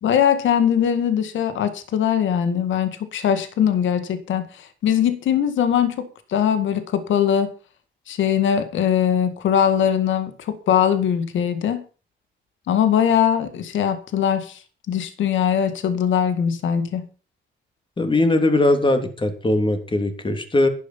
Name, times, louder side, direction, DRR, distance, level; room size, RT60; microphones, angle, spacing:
voice 1, 0.0-7.5 8.1-11.8 12.7-14.6 14.9-17.1, left 9 dB, 75° left, 11 dB, 2.0 m, -21 dB
voice 2, 18.0-20.7, left 2 dB, 25° left, 7 dB, 3.2 m, -20 dB
11.5 x 11.0 x 5.7 m, 0.37 s
cardioid pair, 90°, 20 cm